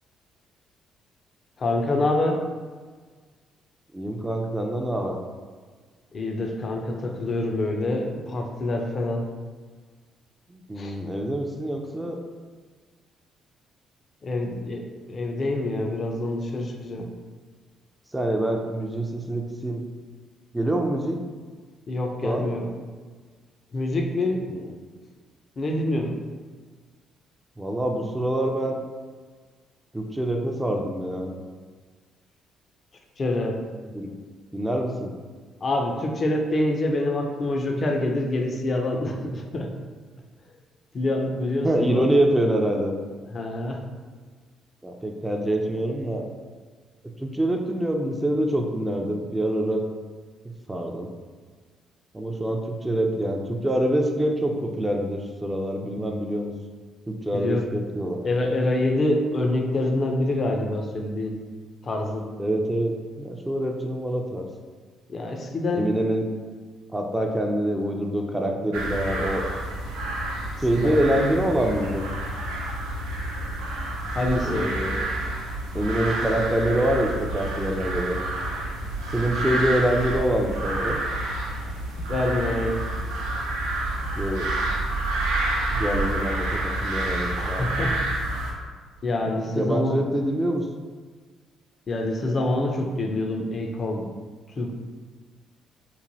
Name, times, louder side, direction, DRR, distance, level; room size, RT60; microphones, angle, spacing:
voice 1, 1.6-2.4 6.1-9.3 10.8-11.0 14.2-17.1 21.9-22.7 23.7-24.5 25.6-26.2 33.2-33.6 35.6-39.7 40.9-42.2 43.3-43.9 57.3-57.6 58.2-61.4 61.8-62.3 65.1-65.9 70.8-71.0 74.1-74.7 81.9-82.8 87.4-88.0 89.0-90.0 91.9-94.1 94.5-94.7, left 2 dB, 45° left, 2 dB, 0.4 m, -26 dB
voice 2, 3.9-5.2 10.5-12.2 18.1-19.9 20.5-21.2 22.2-22.5 24.5-24.6 27.6-28.8 29.9-31.3 33.9-34.1 34.5-35.1 41.6-42.9 44.8-46.3 47.2-49.9 50.4-51.1 52.1-56.5 57.1-58.2 62.4-64.5 65.7-66.3 66.9-69.4 70.6-72.0 74.4-75.0 75.7-78.2 79.1-81.0 84.2-84.5 85.7-87.7 89.5-90.7, right 1 dB, 15° right, 2 dB, 0.4 m, -25 dB
sound 1, 68.7-88.5, right 1 dB, 80° right, 0.5 m, -29 dB
3.0 x 2.1 x 2.6 m, 1.5 s
hypercardioid pair, 50°, 0 cm